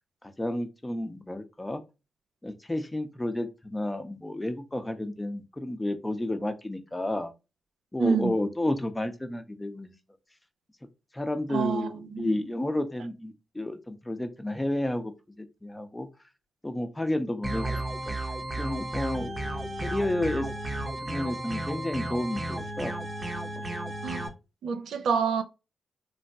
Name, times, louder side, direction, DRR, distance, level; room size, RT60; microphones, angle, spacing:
voice 1, 0.4-1.8 2.4-7.3 7.9-9.9 11.1-15.1 15.4-16.1 16.6-18.2 18.6-19.3 19.8-20.5 21.0-23.0 23.6-23.7, left 1 dB, 20° left, 0.6 m, -31 dB
voice 2, 8.0-8.3 11.5-12.4 24.0-24.3 24.6-25.4, right 6 dB, 85° right, 0.4 m, -27 dB
sound 1, 17.4-24.3, right 1 dB, 40° right, 0.8 m, -33 dB
3.2 x 2.1 x 2.7 m
supercardioid pair, 50°, 0 cm